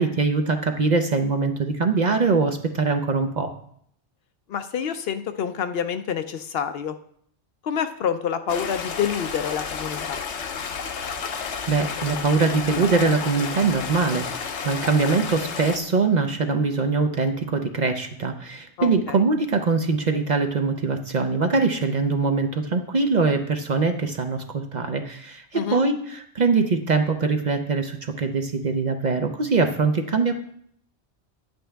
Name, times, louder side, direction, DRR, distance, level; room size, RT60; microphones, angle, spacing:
voice 1, 0.0-3.5 11.7-30.3, right 4 dB, 50° right, 5 dB, 0.6 m, -23 dB
voice 2, 4.5-6.9 7.6-10.2 18.8-19.2 25.5-25.8, left 8 dB, 65° left, 9 dB, 0.7 m, -27 dB
Stream, 8.5-15.8, left 6 dB, 80° left, 1.1 m, -31 dB
9.6 x 7.9 x 3.4 m, 0.66 s
omnidirectional pair, 1.2 m